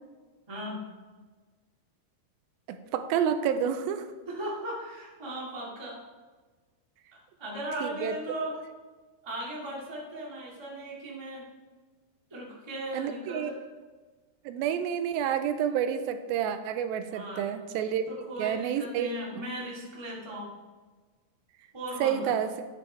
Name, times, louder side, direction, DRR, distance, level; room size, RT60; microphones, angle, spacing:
voice 1, 0.5-0.9 4.3-6.0 7.1-8.6 9.2-11.5 12.3-13.5 17.1-17.5 18.1-20.5 21.7-22.4, right 1 dB, 15° right, -4 dB, 1.1 m, -37 dB
voice 2, 2.7-4.1 7.8-8.1 12.9-13.5 14.5-18.1 18.4-19.1 22.0-22.5, right 8 dB, 90° right, 9 dB, 2.4 m, -29 dB
10.5 x 9.0 x 3.3 m, 1.3 s
omnidirectional pair, 4.2 m